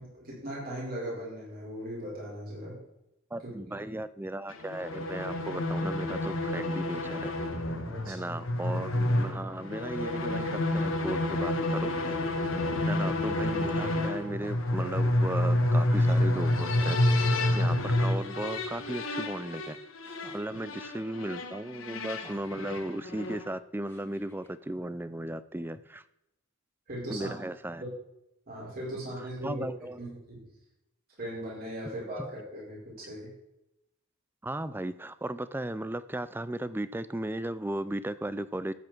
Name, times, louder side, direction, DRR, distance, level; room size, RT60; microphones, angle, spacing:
voice 1, 0.0-2.8 3.4-3.8 7.9-8.3 12.6-13.1 26.9-27.3 27.8-27.9 28.5-29.7 30.0-30.4 31.2-33.3, equal, 45° right, -5 dB, 5.5 m, -39 dB
voice 2, 3.3-7.3 8.1-11.9 12.9-17.0 17.5-19.8 20.3-26.0 27.1-27.8 29.4-30.0 32.2-32.3 34.4-38.7, right 1 dB, 10° right, 15 dB, 0.4 m, -36 dB
sound 1, 4.5-23.5, left 1 dB, 70° left, 1.4 m, -29 dB
sound 2, 14.2-15.0 15.7-15.8 16.1-16.6 18.2-19.0 20.0-20.5 22.0-22.7 23.8-24.5, left 1 dB, 10° left, 2.0 m, -54 dB
13.5 x 8.6 x 4.6 m, 0.85 s
head